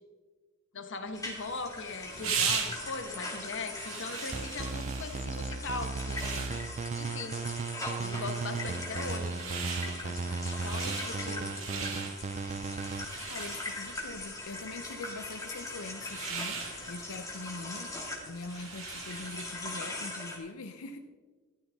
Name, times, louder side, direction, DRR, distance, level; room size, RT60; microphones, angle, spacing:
voice 1, 0.7-6.5 6.9-7.4 8.0-12.0, left 3 dB, 60° left, 7 dB, 1.3 m, -40 dB
sound 1, 1.2-20.4, left 2 dB, 15° left, 2.3 m, -41 dB
sound 2, 1.2-19.7, right 5 dB, 65° right, 2.1 m, -40 dB
sound 3, 4.3-13.0, right 4 dB, 30° right, 0.4 m, -36 dB
voice 2, 13.3-17.9 18.2-21.0, left 3 dB, 90° left, 7 dB, 0.7 m, -43 dB
13.5 x 13.0 x 3.6 m, 1.4 s
head